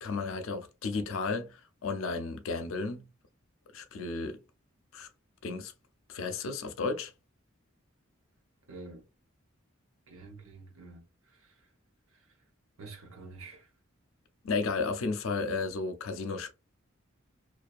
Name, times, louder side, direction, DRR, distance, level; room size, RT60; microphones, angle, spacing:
voice 1, 0.0-3.1 3.7-4.4 4.9-5.1 5.4-5.7 6.1-7.1 14.4-16.5, left 4 dB, 75° left, 0.5 m, -33 dB
voice 2, 8.7-9.0 10.1-11.0 11.3-11.5 12.8-13.7, right 3 dB, 75° right, 0.7 m, -47 dB
2.5 x 2.2 x 2.3 m
head